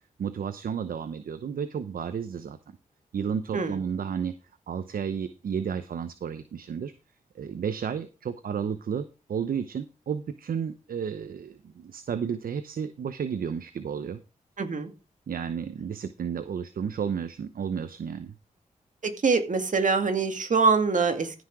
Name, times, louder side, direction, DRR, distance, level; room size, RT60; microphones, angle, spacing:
voice 1, 0.2-2.6 3.1-4.3 4.7-6.9 7.3-14.2 15.3-18.3, right 7 dB, 75° right, 11 dB, 0.8 m, -32 dB
voice 2, 14.6-14.9 19.0-21.4, right 4 dB, 60° right, 6 dB, 2.4 m, -24 dB
14.5 x 6.2 x 4.8 m, 0.29 s
cardioid pair, 60°, 15 cm